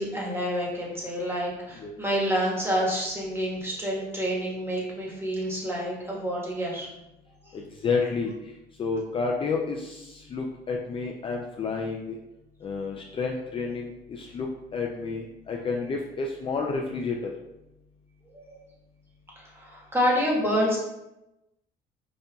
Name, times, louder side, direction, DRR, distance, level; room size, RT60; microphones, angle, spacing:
voice 1, 0.0-6.9 7.5-7.6 18.3-18.6 19.4-20.8, equal, 15° right, -4 dB, 1.3 m, -28 dB
voice 2, 7.5-8.3 8.8-12.2 12.6-17.3, left 4 dB, 30° left, 0 dB, 0.4 m, -30 dB
5.1 x 2.7 x 2.3 m, 0.93 s
cardioid pair, 110°, 17 cm